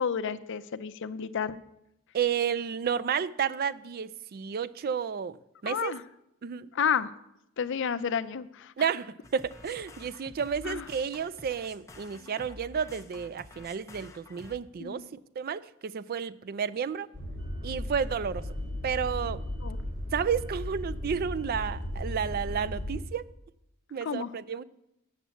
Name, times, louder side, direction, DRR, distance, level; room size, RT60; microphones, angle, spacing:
voice 1, 0.0-1.6 5.6-6.0 6.7-7.1 7.6-8.7 10.6-10.8 14.8-15.0 19.6-19.8 24.0-24.3, left 7 dB, 60° left, 0.5 m, -30 dB
voice 2, 2.1-5.4 5.6-6.0 6.4-6.7 8.8-15.1 15.4-17.1 17.6-18.5 18.8-19.4 20.1-23.2 23.9-24.6, right 7 dB, 45° right, 0.3 m, -31 dB
sound 1, 9.2-14.6, left 2 dB, 15° left, 0.7 m, -49 dB
sound 2, 17.1-23.0, left 1 dB, 60° right, 2.4 m, -36 dB
8.2 x 7.3 x 7.1 m
head